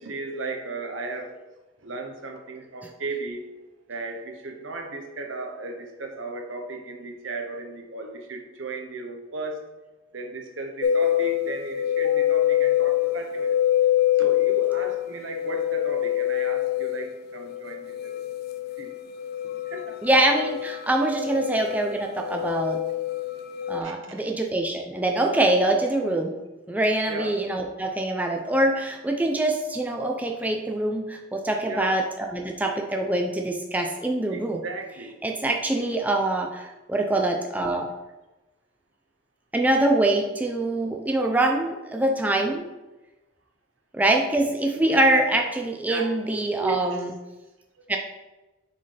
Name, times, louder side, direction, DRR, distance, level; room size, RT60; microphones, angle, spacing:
voice 1, 0.0-1.5 1.8-3.5 3.9-9.6 10.1-13.6 14.2-18.2 18.8-18.9 19.7-20.0 23.8-24.2 27.1-27.3 31.7-32.0 34.3-35.1 45.9-47.0, right 3 dB, 75° right, 3 dB, 1.0 m, -35 dB
sound 1, 10.8-23.8, left 12 dB, 50° left, 0.4 m, -25 dB
voice 2, 20.0-22.8 23.7-26.3 26.7-34.6 35.2-37.9 39.5-42.7 43.9-47.1 47.9-48.0, right 1 dB, 10° right, 2 dB, 0.4 m, -24 dB
6.6 x 4.5 x 3.3 m, 1.1 s
head